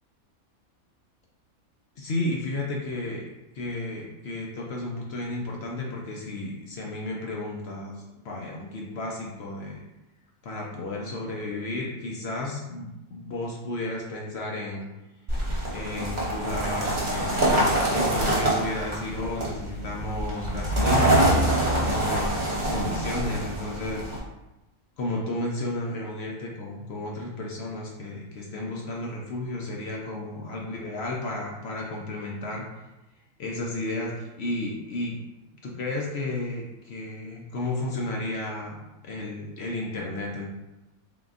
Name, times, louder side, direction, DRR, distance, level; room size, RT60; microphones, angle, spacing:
voice 1, 2.0-3.2 3.5-9.8 10.4-14.9 15.7-24.0 25.0-32.7 33.4-35.2 35.6-40.5, left 2 dB, 60° left, -2 dB, 0.8 m, -33 dB
sound 1, 15.3-24.2, right 1 dB, 35° right, 0.9 m, -25 dB
3.7 x 3.7 x 2.4 m, 0.98 s
omnidirectional pair, 1.5 m